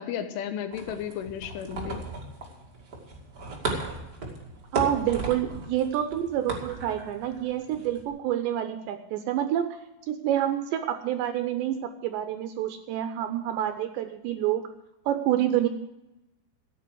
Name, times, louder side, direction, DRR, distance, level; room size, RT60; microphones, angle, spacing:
voice 1, 0.0-2.0, left 9 dB, 80° left, 9 dB, 3.5 m, -33 dB
sound 1, 0.7-8.0, right 3 dB, 45° right, 1.2 m, -36 dB
voice 2, 4.7-9.8 10.1-14.7 15.1-15.7, right 11 dB, 80° right, 8 dB, 2.7 m, -28 dB
14.5 x 9.3 x 6.2 m, 0.94 s
omnidirectional pair, 5.7 m